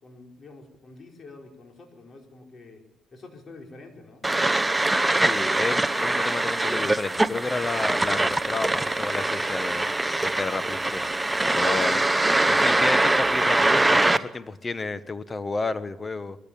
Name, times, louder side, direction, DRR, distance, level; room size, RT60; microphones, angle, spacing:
voice 1, 0.0-2.8 3.1-4.2 11.8-11.9, left 3 dB, 45° left, 3 dB, 4.8 m, -46 dB
sound 1, 4.2-14.2, right 2 dB, 15° right, 0.9 m, -23 dB
voice 2, 5.1-9.9 10.2-11.1 11.5-12.0 12.5-16.4, left 3 dB, 25° left, 14 dB, 1.3 m, -31 dB
21.5 x 14.0 x 9.1 m, 0.93 s
cardioid pair, 90°, 0 cm